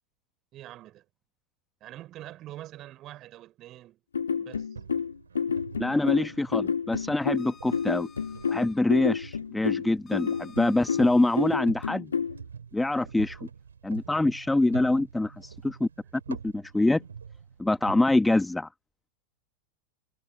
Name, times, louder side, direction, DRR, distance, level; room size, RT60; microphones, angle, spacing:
voice 1, 0.5-1.0 1.8-4.0 4.4-4.7 5.8-6.3, right 14 dB, 35° right, 4.2 m, -45 dB
sound 1, 4.1-12.4, left 6 dB, 70° left, 2.0 m, -29 dB
sound 2, 4.7-18.0, right 6 dB, 70° right, 4.0 m, -46 dB
voice 2, 5.8-8.1 8.5-12.1 12.7-13.4 13.8-15.9 16.3-17.0 17.6-18.7, left 2 dB, 5° left, 1.2 m, -25 dB
sound 3, 7.2-8.8 10.0-11.6, left 7 dB, 20° left, 6.0 m, -53 dB
figure-of-eight pair, 90°, 0 cm